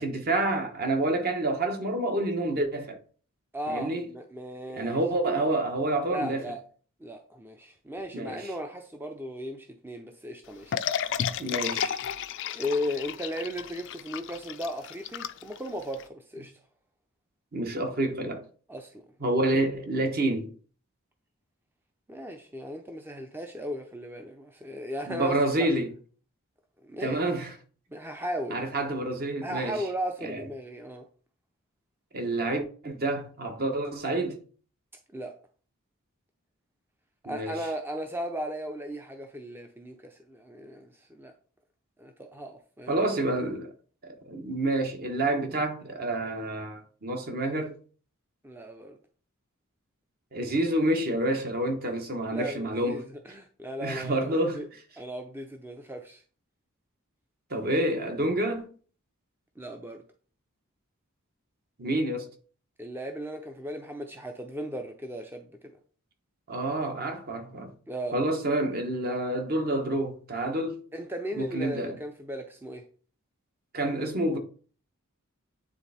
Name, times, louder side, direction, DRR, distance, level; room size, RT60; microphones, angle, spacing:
voice 1, 0.0-3.0 3.7-4.1 4.7-6.4 8.1-8.5 11.4-12.0 17.5-18.4 19.2-20.5 25.1-25.9 27.0-27.6 28.5-29.8 30.2-30.4 32.1-34.4 37.2-37.6 42.9-43.7 44.0-47.8 50.3-53.1 53.8-54.6 57.5-58.7 61.8-62.3 66.5-67.7 68.1-70.8 71.3-72.0 73.7-74.4, right 1 dB, 45° right, 1.2 m, -28 dB
voice 2, 3.5-5.0 6.1-6.6 7.0-10.8 12.5-16.5 18.7-19.0 22.1-25.7 26.8-27.2 27.9-28.6 29.4-31.1 35.1-35.3 37.2-41.3 42.0-43.0 48.4-49.0 52.3-54.3 54.5-54.7 55.0-56.2 59.6-60.0 62.8-65.5 67.9-68.2 70.9-72.8, equal, 10° right, 0.5 m, -36 dB
sound 1, 10.7-16.0, left 9 dB, 60° left, 0.4 m, -32 dB
9.2 x 3.4 x 4.2 m
head